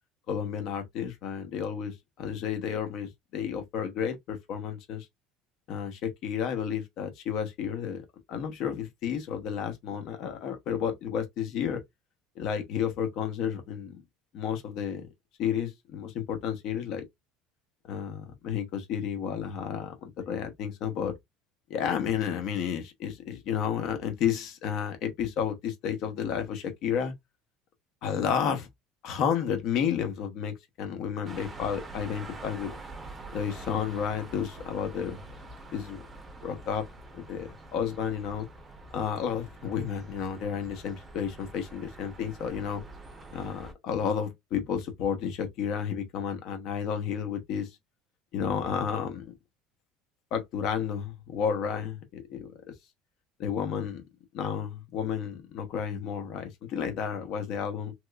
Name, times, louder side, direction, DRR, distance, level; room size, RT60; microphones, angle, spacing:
voice 1, 0.3-5.1 5.7-8.0 8.3-11.8 12.4-14.0 14.3-15.1 15.4-17.0 17.9-21.1 21.7-27.1 28.0-28.7 29.0-32.7 33.3-35.2 35.7-36.0 36.4-36.8 37.1-38.5 38.9-42.8 43.3-47.7 48.3-49.3 50.3-52.5 53.4-54.0 54.3-57.9, left 8 dB, 50° left, 0.9 m, -31 dB
sound 1, 31.2-43.7, right 2 dB, 15° right, 0.7 m, -46 dB
3.0 x 2.9 x 2.3 m
cardioid pair, 165°, 0 cm